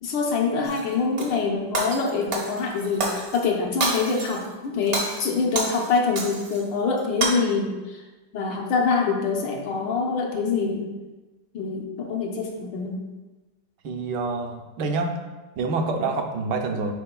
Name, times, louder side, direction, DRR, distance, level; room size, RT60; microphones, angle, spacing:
voice 1, 0.0-8.0 8.3-10.9 11.5-13.0, left 4 dB, 70° left, 1 dB, 1.5 m, -25 dB
Shatter, 0.6-1.3 1.7-3.4 3.8-4.5 4.8-6.6 7.0-7.3, right 2 dB, 50° right, 0.9 m, -28 dB
voice 2, 13.8-15.2 15.6-16.9, right 3 dB, 70° right, 4 dB, 1.1 m, -27 dB
9.8 x 4.3 x 2.2 m, 1.2 s
omnidirectional pair, 2.2 m